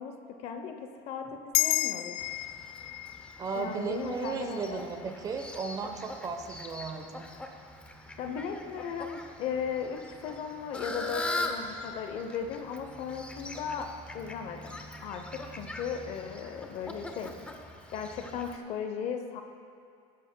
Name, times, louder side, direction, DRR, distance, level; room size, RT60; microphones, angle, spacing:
voice 1, 0.0-2.1 3.6-4.8 8.2-17.3 17.9-19.4, left 6 dB, 45° left, 6 dB, 0.7 m, -37 dB
sound 1, 1.5-6.2, left 19 dB, 75° left, 0.4 m, -34 dB
Fowl, 2.2-18.6, left 2 dB, 10° left, 0.5 m, -42 dB
voice 2, 3.4-7.3, right 4 dB, 25° right, 5 dB, 0.8 m, -35 dB
16.5 x 12.0 x 2.2 m, 2.4 s
cardioid pair, 165°, 15 cm